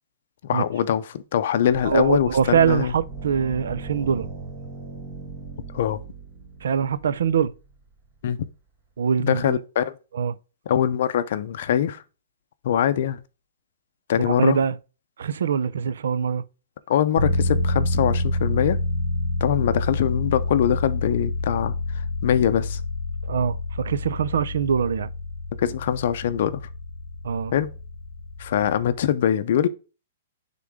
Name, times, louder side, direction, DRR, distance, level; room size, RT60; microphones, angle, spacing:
voice 1, 0.4-2.9 5.7-6.0 8.2-8.5 9.2-10.0 10.7-12.0 12.6-13.2 14.1-14.6 16.9-18.8 19.4-21.7 22.2-22.8 25.6-26.6 27.5-27.7 28.4-29.7, left 9 dB, 45° left, 0.5 m, -23 dB
sound 1, 1.7-8.2, right 3 dB, 20° right, 1.0 m, -39 dB
voice 2, 1.8-4.3 6.6-7.5 9.0-9.6 10.1-10.4 14.3-14.8 15.2-16.4 23.3-25.1 27.2-27.5, right 7 dB, 75° right, 0.5 m, -23 dB
sound 2, 17.2-29.0, left 2 dB, 50° right, 2.1 m, -28 dB
9.6 x 3.7 x 3.6 m
hypercardioid pair, 180°, 0 cm